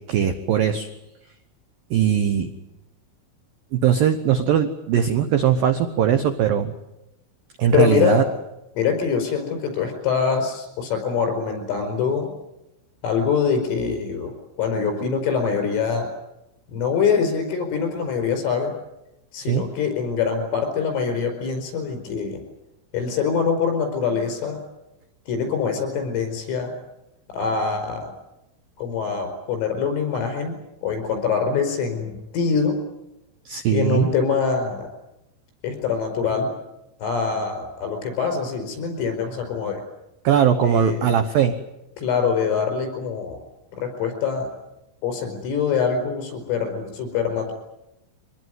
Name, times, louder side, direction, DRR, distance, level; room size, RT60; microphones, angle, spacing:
voice 1, 0.1-0.9 1.9-2.5 3.7-6.7 7.6-8.2 19.5-19.6 33.5-34.1 40.2-41.6, right 8 dB, 90° right, 8 dB, 2.0 m, -20 dB
voice 2, 7.7-8.2 8.8-12.3 13.0-16.1 16.7-18.7 19.3-22.4 22.9-24.6 25.3-26.7 27.3-28.1 28.8-30.6 30.8-32.8 33.7-34.9 35.6-36.5 37.0-39.8 40.6-41.1 42.0-43.4 43.8-44.5 45.0-47.5, left 6 dB, 75° left, 6 dB, 7.5 m, -24 dB
24.5 x 19.5 x 9.4 m, 0.90 s
omnidirectional pair, 5.9 m